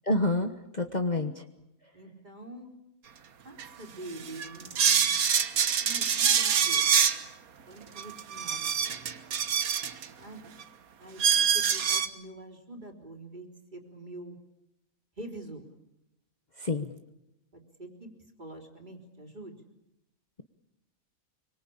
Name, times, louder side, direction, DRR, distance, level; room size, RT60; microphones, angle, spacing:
voice 1, 0.1-1.3 16.6-16.9, left 2 dB, 35° left, 6 dB, 1.3 m, -28 dB
voice 2, 1.9-2.8 3.4-5.2 5.8-6.9 7.7-9.1 10.2-10.5 11.0-11.2 11.5-14.4 15.2-15.7 17.5-18.1 18.4-19.6, right 2 dB, 35° right, 3 dB, 3.9 m, -45 dB
sound 1, 3.6-3.7 4.2-7.2 8.0-10.1 10.6-10.7 11.2-12.1, right 7 dB, 90° right, 1.7 m, -25 dB
25.5 x 24.5 x 8.7 m, 0.88 s
omnidirectional pair, 1.5 m